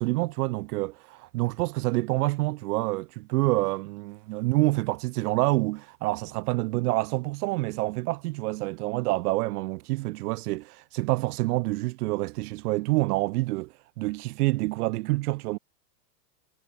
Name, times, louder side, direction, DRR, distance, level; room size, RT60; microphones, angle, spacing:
voice 1, 0.0-15.6, right 21 dB, 65° right, 0.6 m, -27 dB
supercardioid pair, 130°, 49 cm